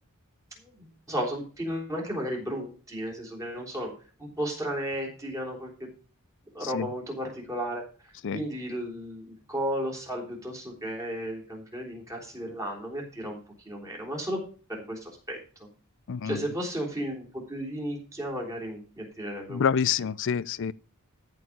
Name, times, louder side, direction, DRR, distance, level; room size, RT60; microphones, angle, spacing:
voice 1, 0.6-3.9 4.2-5.7 6.5-7.8 8.3-13.4 13.6-14.4 14.7-15.4 16.2-19.6, equal, 15° right, 3.8 m, -34 dB
voice 2, 16.1-16.4 19.5-20.7, left 7 dB, 60° left, 0.5 m, -27 dB
14.0 x 4.8 x 6.1 m
head